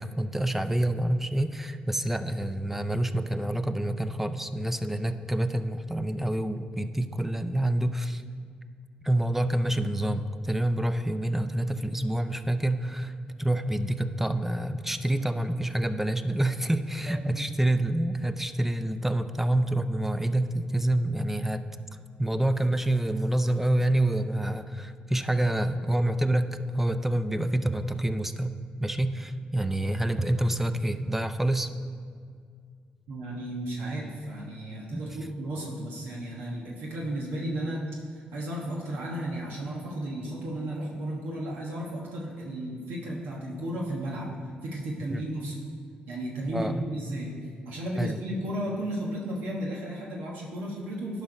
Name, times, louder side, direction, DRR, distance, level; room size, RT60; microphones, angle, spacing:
voice 1, 0.0-8.2 9.0-21.6 22.2-31.7 34.9-35.2 45.1-45.2 46.5-46.8 48.0-48.2, right 1 dB, 10° right, 10 dB, 0.5 m, -27 dB
voice 2, 17.1-17.5 33.1-37.8 38.1-44.3 44.6-45.6 46.1-47.3 47.6-51.2, right 1 dB, 80° right, -3 dB, 1.2 m, -34 dB
10.5 x 5.1 x 5.0 m, 2.1 s
supercardioid pair, 55°, 3 cm